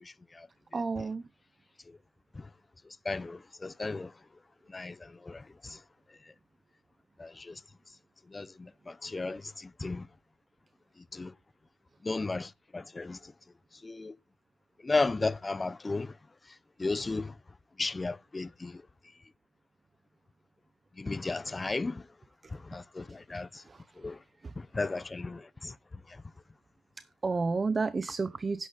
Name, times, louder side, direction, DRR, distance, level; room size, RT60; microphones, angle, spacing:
voice 1, 0.7-1.2 27.2-28.7, right 4 dB, 30° right, 0.7 m, -30 dB
voice 2, 3.1-4.1 4.7-5.0 5.3-5.4 7.2-7.5 8.3-9.4 9.8-10.1 11.1-11.3 12.0-13.2 13.8-14.1 14.8-16.1 16.8-17.3 17.8-18.8 21.0-22.0 22.5-23.5 24.0-24.2 24.6-25.7, left 3 dB, 20° left, 0.6 m, -34 dB
11.0 x 9.6 x 4.1 m
cardioid pair, 90°, 0 cm